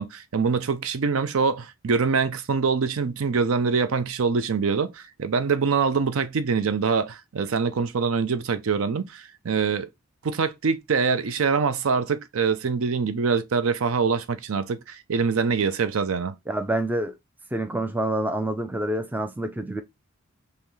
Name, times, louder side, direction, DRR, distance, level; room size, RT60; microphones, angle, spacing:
voice 1, 0.0-9.9 10.2-16.3, right 5 dB, 70° right, 0.5 m, -24 dB
voice 2, 16.5-17.1 17.5-19.8, right 1 dB, 10° right, 0.3 m, -27 dB
5.5 x 2.1 x 3.1 m
head